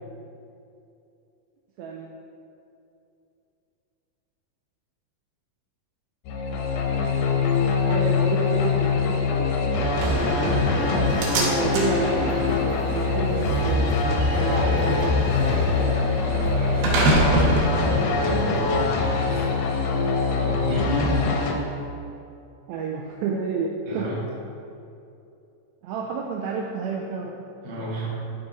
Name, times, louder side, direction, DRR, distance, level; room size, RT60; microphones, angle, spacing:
voice 1, 1.8-2.1 7.9-9.5 11.4-12.2 12.9-15.1 15.5-16.0 22.7-24.1 25.8-27.5, right 4 dB, 90° right, 0 dB, 2.1 m, -30 dB
sound 1, 6.3-21.5, left 4 dB, 75° left, 2.1 m, -23 dB
Slam, 10.0-19.0, right 1 dB, 70° right, 2.9 m, -27 dB
voice 2, 18.0-19.8 20.3-21.2 23.8-24.2 27.6-28.3, equal, 40° right, -7 dB, 1.3 m, -32 dB
11.5 x 4.8 x 4.0 m, 2.6 s
omnidirectional pair, 4.9 m